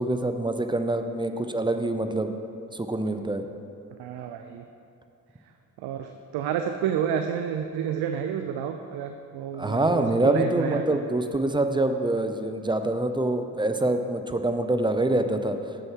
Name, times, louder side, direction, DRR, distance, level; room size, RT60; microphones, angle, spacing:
voice 1, 0.0-2.3 2.7-3.4 9.6-15.6, right 2 dB, 10° right, 7 dB, 0.5 m, -25 dB
voice 2, 4.0-4.6 5.8-11.0, right 8 dB, 75° right, 6 dB, 0.5 m, -30 dB
7.0 x 6.6 x 4.6 m, 2.5 s
supercardioid pair, 55°, 38 cm